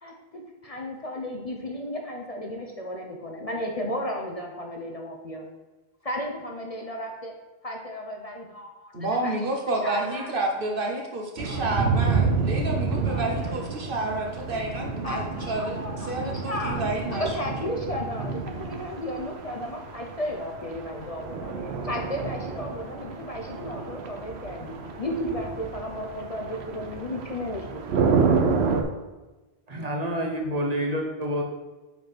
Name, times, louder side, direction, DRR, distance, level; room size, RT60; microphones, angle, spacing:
voice 1, 0.0-5.5 6.0-7.3 7.6-8.9 9.2-9.3 9.8-10.3 11.4-11.6 13.1-13.5 15.0-16.8 17.1-27.8, left 1 dB, 40° left, 1 dB, 0.8 m, -34 dB
voice 2, 8.9-17.3, right 2 dB, 60° right, 1 dB, 1.2 m, -30 dB
sound 1, 11.4-28.8, right 5 dB, 90° right, 1.0 m, -29 dB
voice 3, 29.7-31.4, equal, 40° right, 1 dB, 1.1 m, -28 dB
5.3 x 4.5 x 6.0 m, 1.1 s
omnidirectional pair, 1.0 m